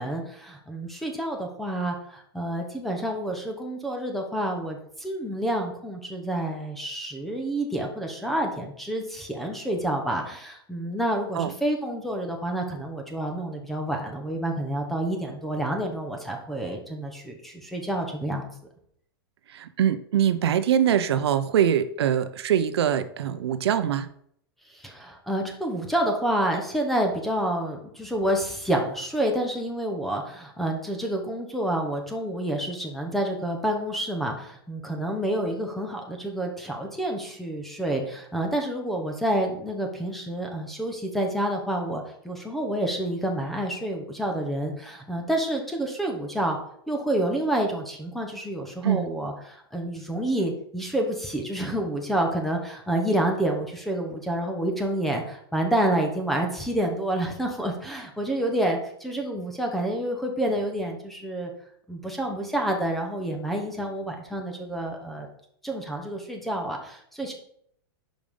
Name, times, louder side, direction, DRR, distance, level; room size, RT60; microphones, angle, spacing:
voice 1, 0.0-18.5 24.7-46.6 46.9-61.5 61.9-65.3 65.6-67.3, right 1 dB, ahead, 2 dB, 0.7 m, -28 dB
voice 2, 19.5-24.1 48.8-49.1, right 9 dB, 85° right, 12 dB, 0.6 m, -23 dB
5.1 x 5.1 x 5.3 m, 0.67 s
supercardioid pair, 175°, 13 cm